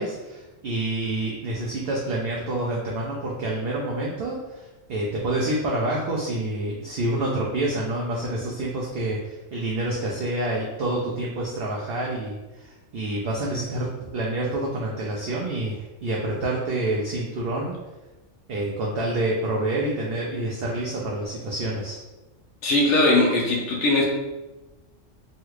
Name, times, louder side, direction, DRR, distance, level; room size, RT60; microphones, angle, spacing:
voice 1, 0.0-17.7 18.5-22.0, right 1 dB, 65° right, -3 dB, 0.6 m, -28 dB
voice 2, 22.6-24.0, left 2 dB, 70° left, -2 dB, 0.9 m, -20 dB
3.2 x 2.3 x 3.1 m, 1.1 s
omnidirectional pair, 1.3 m